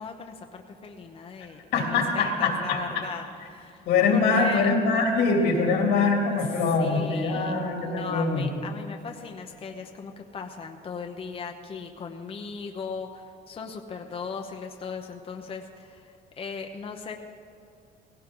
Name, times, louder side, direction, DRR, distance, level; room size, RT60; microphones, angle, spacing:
voice 1, 0.0-3.8 4.1-4.7 6.8-17.2, left 5 dB, 35° left, 3 dB, 0.9 m, -38 dB
voice 2, 1.7-3.0 3.9-8.5, left 4 dB, 85° left, 1 dB, 2.7 m, -23 dB
17.0 x 16.5 x 3.8 m, 2.6 s
cardioid pair, 110°, 17 cm